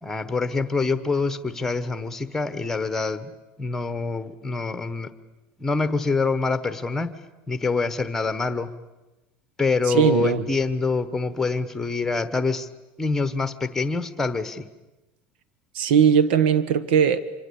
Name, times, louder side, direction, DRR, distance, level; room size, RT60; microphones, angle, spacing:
voice 1, 0.0-3.3 3.6-5.1 5.6-7.2 7.5-8.7 9.6-12.7 13.0-14.7, left 4 dB, 5° left, 12 dB, 1.1 m, -25 dB
voice 2, 9.9-10.4 15.7-17.2, right 7 dB, 90° right, 15 dB, 1.4 m, -19 dB
26.5 x 25.0 x 8.5 m, 1.1 s
cardioid pair, 175°, 5 cm